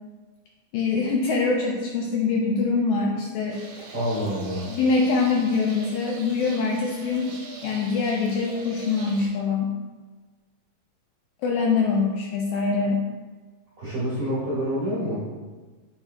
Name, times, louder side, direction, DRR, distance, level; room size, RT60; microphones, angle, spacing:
voice 1, 0.7-3.6 4.7-7.4 7.6-9.8 11.4-13.1, left 4 dB, 85° left, -1 dB, 1.7 m, -24 dB
sound 1, 3.5-9.3, right 3 dB, 70° right, 1.9 m, -42 dB
voice 2, 3.9-4.7 13.8-15.2, equal, 45° right, -10 dB, 1.5 m, -27 dB
9.1 x 4.6 x 2.2 m, 1.3 s
omnidirectional pair, 4.0 m